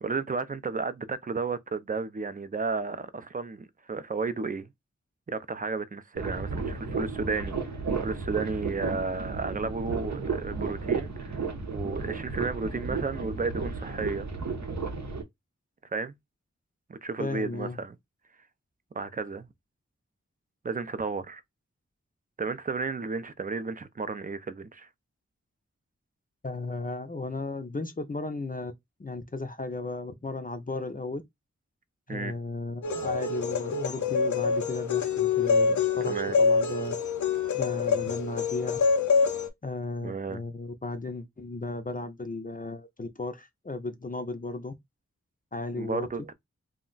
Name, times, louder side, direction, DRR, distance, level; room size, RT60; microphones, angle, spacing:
voice 1, 0.0-4.7 5.3-14.3 15.9-16.1 16.9-18.0 18.9-19.5 20.6-21.4 22.4-24.9 32.1-32.3 36.1-36.4 40.0-40.4 45.8-46.3, right 4 dB, 30° right, 0.4 m, -33 dB
sound 1, 6.1-15.2, right 4 dB, 75° right, 0.7 m, -33 dB
voice 2, 17.2-17.8 26.4-28.7 29.0-31.2 32.1-37.0 37.5-38.8 39.6-44.7 45.5-46.1, left 3 dB, 30° left, 0.5 m, -35 dB
sound 2, 32.8-39.5, left 5 dB, 85° left, 0.5 m, -26 dB
2.3 x 2.1 x 3.8 m
wide cardioid pair, 45°, 29 cm